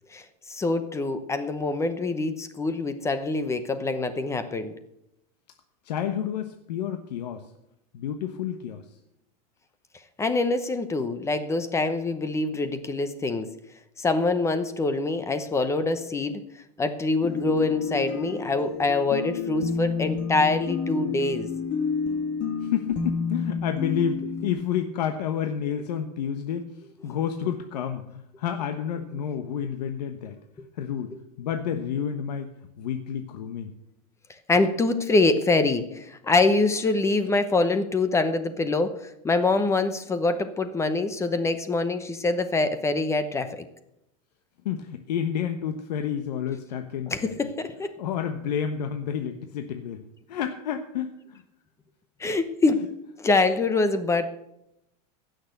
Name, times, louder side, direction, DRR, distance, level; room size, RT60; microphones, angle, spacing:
voice 1, 0.1-4.7 10.2-13.5 14.0-16.4 16.8-21.5 30.6-30.7 34.5-43.6 47.1-47.9 52.2-52.8 53.2-54.2, left 3 dB, 15° left, 10 dB, 0.9 m, -25 dB
voice 2, 5.8-7.5 7.9-8.8 22.6-26.7 27.0-30.3 30.8-32.5 32.8-33.7 44.6-47.3 48.0-50.0 50.3-51.4, left 8 dB, 90° left, 6 dB, 1.2 m, -30 dB
sound 1, 17.2-24.5, left 5 dB, 40° left, 1.8 m, -29 dB
16.0 x 6.6 x 8.1 m, 0.82 s
supercardioid pair, 150°, 20 cm